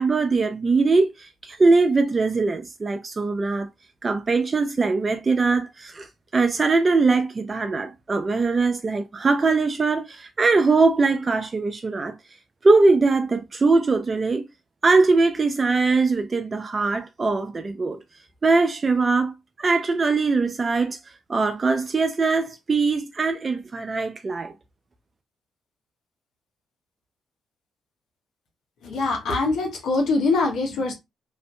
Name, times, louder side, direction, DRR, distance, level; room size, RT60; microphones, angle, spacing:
voice 1, 0.0-3.7 4.0-12.2 12.6-14.5 14.8-18.0 18.4-19.3 19.6-21.0 21.3-24.5, right 3 dB, 35° right, 0.4 m, -21 dB
voice 2, 28.8-30.9, left 3 dB, 75° left, 0.9 m, -23 dB
2.5 x 2.5 x 2.2 m
supercardioid pair, 60°, 0 cm